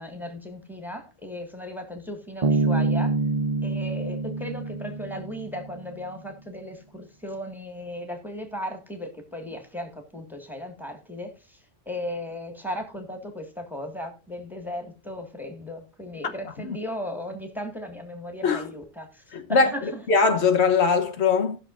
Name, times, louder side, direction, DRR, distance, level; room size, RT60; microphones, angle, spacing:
voice 1, 0.0-3.2 3.6-20.0, left 1 dB, ahead, 1.7 m, -36 dB
Bass guitar, 2.4-5.9, right 3 dB, 40° right, 0.7 m, -26 dB
voice 2, 19.3-19.7 20.1-21.6, left 5 dB, 85° left, 1.3 m, -21 dB
18.5 x 6.2 x 2.5 m
omnidirectional pair, 1.1 m